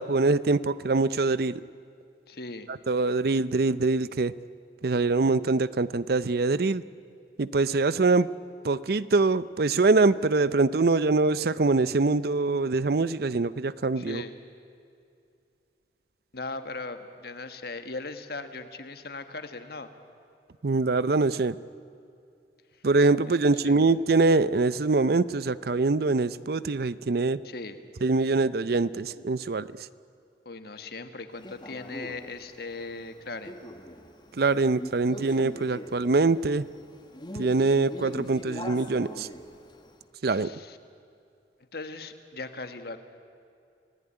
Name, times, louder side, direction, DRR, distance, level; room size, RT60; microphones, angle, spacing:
voice 1, 0.0-1.6 2.9-4.3 4.8-6.8 7.4-8.3 8.6-14.2 20.6-21.6 22.8-27.4 28.0-29.7 34.3-36.7 37.3-39.3 40.2-40.5, right 3 dB, 60° right, 17 dB, 0.6 m, -24 dB
voice 2, 2.3-2.7 14.0-14.3 16.3-19.9 23.4-23.9 27.4-27.8 30.4-33.5 40.3-40.8 41.7-43.0, left 3 dB, 60° left, 8 dB, 1.6 m, -39 dB
Male speech man speaking, 31.4-40.0, left 1 dB, 25° left, 1.6 m, -43 dB
29.5 x 17.5 x 9.9 m, 2.5 s
head